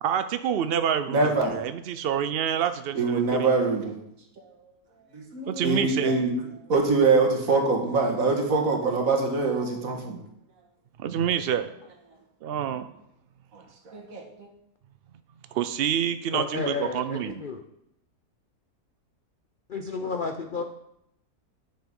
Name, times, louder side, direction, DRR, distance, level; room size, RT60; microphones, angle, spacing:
voice 1, 0.0-3.5 5.5-6.1 11.0-11.7 12.4-12.9 15.5-17.4, right 9 dB, 80° right, 11 dB, 0.5 m, -27 dB
voice 2, 1.1-1.6 3.0-3.9 5.1-6.3 6.7-10.2 13.9-14.5, right 3 dB, 60° right, 2 dB, 1.9 m, -24 dB
voice 3, 16.3-17.6 19.7-20.6, left 5 dB, 55° left, 5 dB, 0.5 m, -31 dB
9.3 x 6.6 x 5.3 m, 0.79 s
omnidirectional pair, 1.6 m